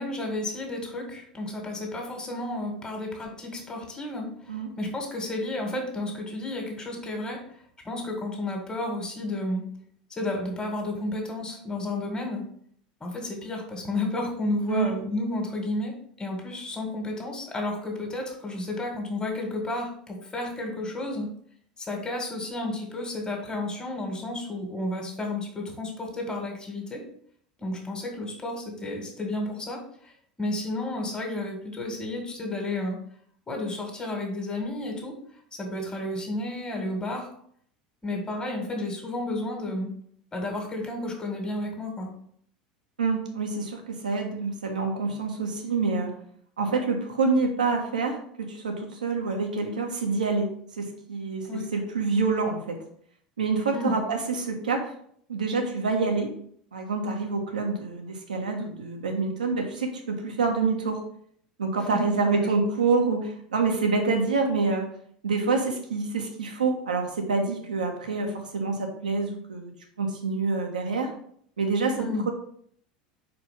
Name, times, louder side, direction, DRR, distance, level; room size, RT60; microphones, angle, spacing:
voice 1, 0.0-7.4 7.8-9.6 10.1-12.4 13.0-21.3 21.8-27.0 27.6-30.1 30.4-33.0 33.5-35.1 35.5-37.3 38.0-39.9 40.3-42.1 51.4-51.7 53.7-54.0 61.9-62.5 71.9-72.3, left 2 dB, 15° left, 1 dB, 2.1 m, -32 dB
voice 2, 43.0-46.1 46.6-50.5 50.7-52.8 53.4-54.9 55.3-56.3 56.7-61.0 61.6-64.9 65.2-69.7 70.0-71.1 71.6-72.3, right 4 dB, 80° right, 2 dB, 1.2 m, -27 dB
4.9 x 4.5 x 5.2 m, 0.63 s
figure-of-eight pair, 75°, 4 cm